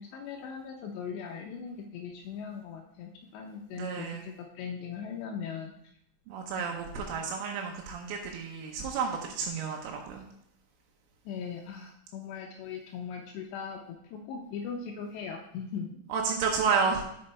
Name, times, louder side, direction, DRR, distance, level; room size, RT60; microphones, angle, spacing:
voice 1, 0.0-5.7 6.6-6.8 11.3-16.0, left 6 dB, 85° left, 2 dB, 2.5 m, -39 dB
voice 2, 3.7-4.2 6.3-10.2 16.1-17.0, right 5 dB, 85° right, 1 dB, 3.3 m, -31 dB
7.6 x 5.5 x 4.2 m, 0.73 s
omnidirectional pair, 5.6 m